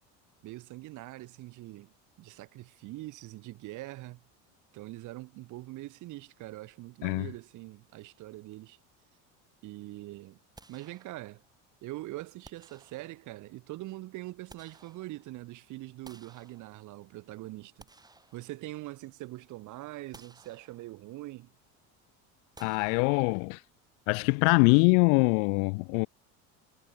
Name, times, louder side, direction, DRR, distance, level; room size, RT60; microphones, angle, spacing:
voice 1, 0.4-4.2 4.7-8.8 9.6-10.4 10.7-11.4 11.8-17.9 18.3-21.5, right 18 dB, 55° right, 3.2 m, -43 dB
sound 1, 10.5-11.6 12.4-13.5 14.1-15.5 16.0-17.1 17.6-19.1 19.4-19.6 20.1-21.2 22.5-23.7, right 3 dB, 10° right, 5.3 m, -57 dB
voice 2, 22.6-23.6 24.1-26.1, left 40 dB or more, 80° left, 0.5 m, -23 dB
cardioid pair, 145°, 36 cm